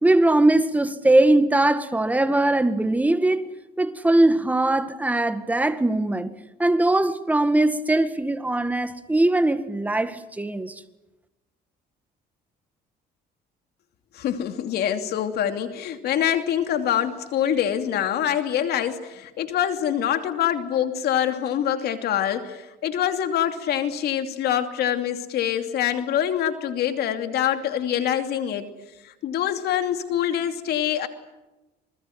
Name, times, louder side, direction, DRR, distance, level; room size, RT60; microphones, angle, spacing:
voice 1, 0.0-3.5 3.8-6.3 6.6-10.8, right 2 dB, 10° right, 1.8 m, -20 dB
voice 2, 14.1-28.7 29.0-31.1, left 10 dB, 70° left, 2.8 m, -25 dB
28.0 x 21.0 x 9.4 m
cardioid pair, 110°, 17 cm